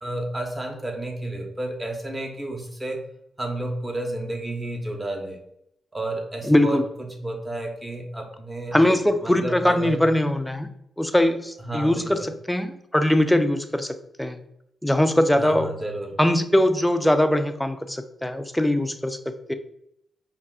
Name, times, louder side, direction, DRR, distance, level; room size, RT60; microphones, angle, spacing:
voice 1, 0.0-3.0 3.4-5.4 5.9-8.7 9.2-10.0 11.7-12.3 15.4-16.2, right 1 dB, 20° right, 2 dB, 1.1 m, -31 dB
voice 2, 6.5-6.9 8.7-10.7 11.0-14.4 14.8-15.7 16.2-19.5, left 1 dB, 5° left, 8 dB, 0.5 m, -21 dB
5.4 x 2.6 x 2.4 m, 0.77 s
supercardioid pair, 55°, 0 cm